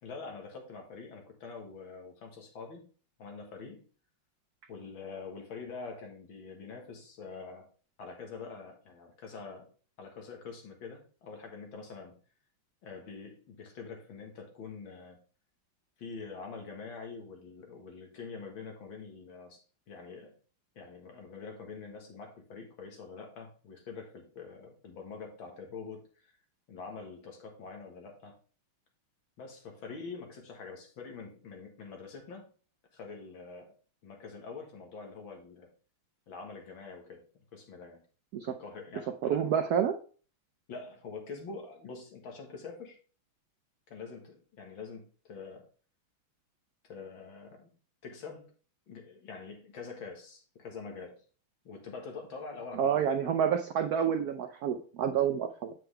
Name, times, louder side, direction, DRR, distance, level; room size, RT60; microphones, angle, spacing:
voice 1, 0.0-2.9 3.2-3.8 4.7-7.7 8.0-9.7 10.0-12.2 12.8-15.2 16.0-20.3 20.8-26.3 26.7-28.3 29.4-32.5 32.9-33.7 34.0-35.7 36.3-37.2 37.5-38.0 38.5-39.4 40.7-43.0 43.9-45.7 46.8-47.7 48.0-48.5 48.9-51.2 51.6-53.3, left 4 dB, 65° left, 3 dB, 2.2 m, -45 dB
voice 2, 39.2-40.0 52.7-55.7, right 8 dB, 90° right, 7 dB, 0.8 m, -28 dB
7.8 x 5.8 x 3.3 m, 0.39 s
omnidirectional pair, 2.3 m